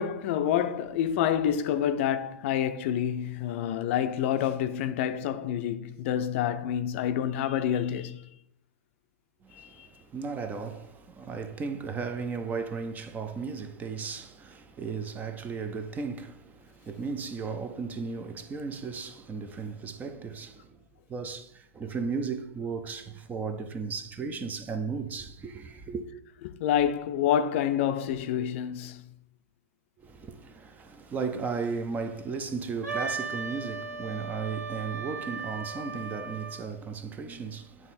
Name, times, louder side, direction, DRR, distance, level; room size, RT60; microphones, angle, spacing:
voice 1, 0.0-8.2 9.5-9.9 26.4-29.0, left 9 dB, 50° left, 0.5 m, -28 dB
voice 2, 9.4-20.8 21.1-26.1 30.0-37.9, right 5 dB, 20° right, 0.6 m, -35 dB
Wind instrument woodwind instrument, 32.8-36.7, right 4 dB, 85° right, 1.6 m, -36 dB
9.3 x 3.2 x 4.2 m
figure-of-eight pair, 105°, 9 cm